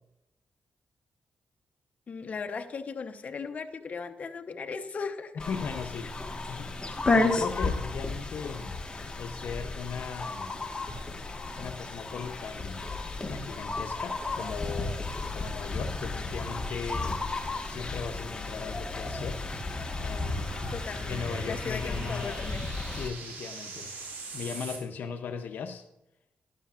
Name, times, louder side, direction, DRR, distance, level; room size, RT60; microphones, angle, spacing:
voice 1, 2.1-5.4 20.7-22.6, left 5 dB, 50° left, 6 dB, 0.9 m, -37 dB
sound 1, 5.4-23.1, left 3 dB, 25° left, 1.4 m, -33 dB
voice 2, 5.5-8.8 9.2-10.6 11.6-12.9 13.3-15.0 15.3-19.4 20.0-20.5 20.9-22.4 22.9-25.9, left 6 dB, 75° left, 7 dB, 0.6 m, -38 dB
sound 2, 17.3-24.8, right 4 dB, 90° right, 2.2 m, -45 dB
12.0 x 11.0 x 2.4 m, 0.90 s
cardioid pair, 85°, 3 cm